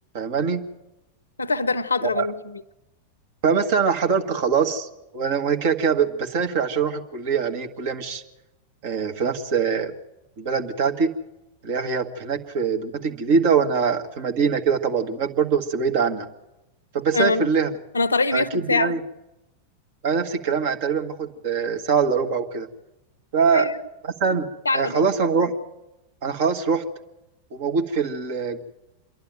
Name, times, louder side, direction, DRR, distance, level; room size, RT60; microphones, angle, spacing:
voice 1, 0.1-0.6 2.0-2.3 3.4-4.9 5.1-8.2 8.8-9.9 10.4-11.1 11.6-16.3 16.9-17.7 18.3-19.0 20.0-22.7 23.3-23.7 24.0-25.6 26.2-26.8 27.5-28.6, right 6 dB, 50° right, 5 dB, 1.7 m, -23 dB
voice 2, 1.4-2.6 17.1-17.5 17.9-18.9 23.5-23.8 24.7-25.1, left 3 dB, 75° left, 18 dB, 0.6 m, -23 dB
27.0 x 11.5 x 9.0 m, 0.95 s
figure-of-eight pair, 90°, 0 cm